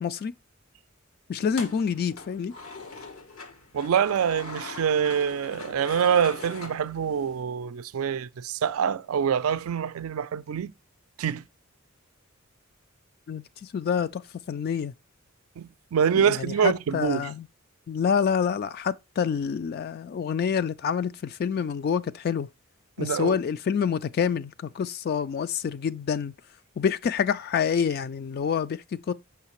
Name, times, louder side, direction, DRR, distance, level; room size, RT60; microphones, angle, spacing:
voice 1, 0.0-0.3 1.3-2.5 13.3-14.2 14.5-14.9 16.1-17.5 17.9-22.5 23.0-26.3 26.8-29.1, left 7 dB, 45° left, 0.3 m, -27 dB
sound 1, 1.4-7.4, left 3 dB, 80° left, 1.2 m, -42 dB
voice 2, 3.7-10.7 11.2-11.5 15.6-17.3 23.0-23.4, right 7 dB, 90° right, 0.4 m, -25 dB
6.3 x 5.8 x 3.0 m
head